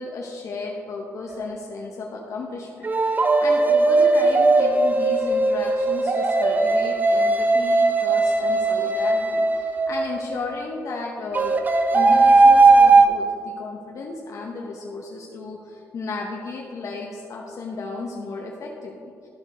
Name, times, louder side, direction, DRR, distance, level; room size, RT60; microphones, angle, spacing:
voice 1, 0.0-11.6 11.9-19.3, left 3 dB, 60° left, -1 dB, 0.9 m, -34 dB
sound 1, 1.3-1.5 2.8-10.2 11.3-13.1, right 3 dB, 30° right, 0.6 m, -18 dB
13.0 x 4.4 x 3.8 m, 2.5 s
cardioid pair, 95°, 6 cm